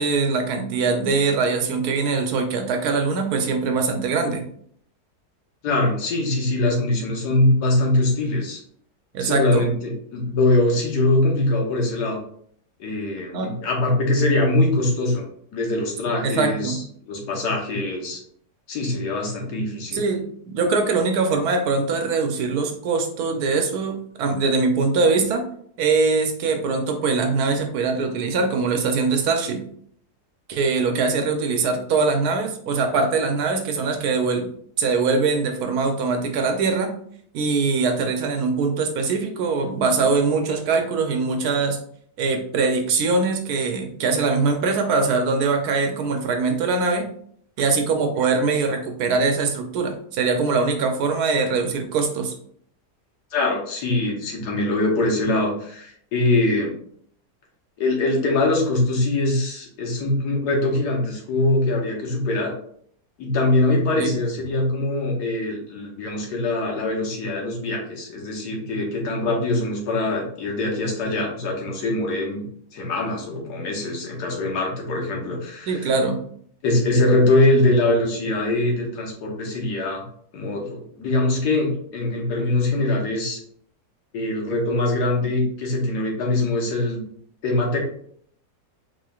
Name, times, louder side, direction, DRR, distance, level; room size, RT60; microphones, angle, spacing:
voice 1, 0.0-4.4 9.1-9.6 13.3-13.5 16.2-16.8 19.9-25.4 25.8-29.6 30.5-34.5 34.8-36.9 37.3-41.8 42.2-47.1 47.6-52.3 64.0-64.1 75.7-76.2, right 4 dB, 75° right, 4 dB, 1.1 m, -22 dB
voice 2, 5.6-8.6 9.2-12.2 12.8-15.2 15.5-18.2 18.7-20.1 53.3-56.7 57.8-62.5 63.2-72.4 72.7-75.9 76.6-80.0 80.3-83.4 84.1-87.0 87.4-87.8, left 2 dB, 80° left, 0 dB, 1.5 m, -22 dB
4.4 x 3.1 x 2.3 m, 0.63 s
omnidirectional pair, 1.7 m